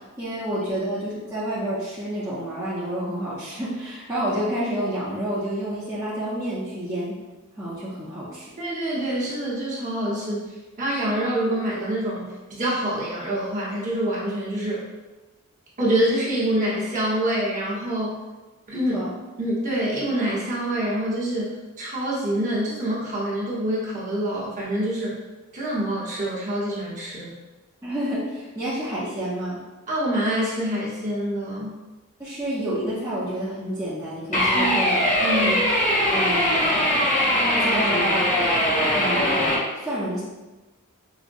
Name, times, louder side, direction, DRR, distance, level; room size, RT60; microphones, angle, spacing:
voice 1, 0.0-7.2 7.6-8.5 18.9-19.1 27.8-29.6 32.2-35.1 35.4-35.6 36.1-37.0 37.6-38.4 38.7-40.2, right 1 dB, 15° right, -11 dB, 0.6 m, -29 dB
voice 2, 8.6-10.5 10.8-14.8 15.8-18.2 18.7-19.0 19.4-25.2 25.5-27.3 29.9-31.8 34.5-34.9 35.2-35.6, right 1 dB, 35° right, -6 dB, 1.0 m, -26 dB
sound 1, 34.3-39.6, equal, 35° left, 0.7 m, -21 dB
4.9 x 2.1 x 2.5 m, 1.2 s
head